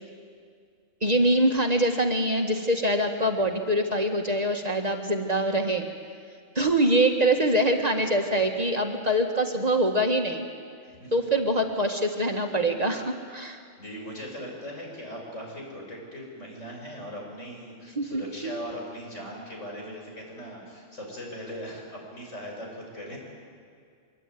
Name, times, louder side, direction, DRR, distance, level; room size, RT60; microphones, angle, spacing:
voice 1, 1.0-5.9 6.6-10.5 11.1-13.6 18.0-18.5, right 1 dB, 35° right, 3 dB, 1.8 m, -24 dB
voice 2, 13.8-23.2, equal, 75° left, -1 dB, 6.9 m, -39 dB
24.0 x 23.0 x 9.3 m, 2.2 s
omnidirectional pair, 1.2 m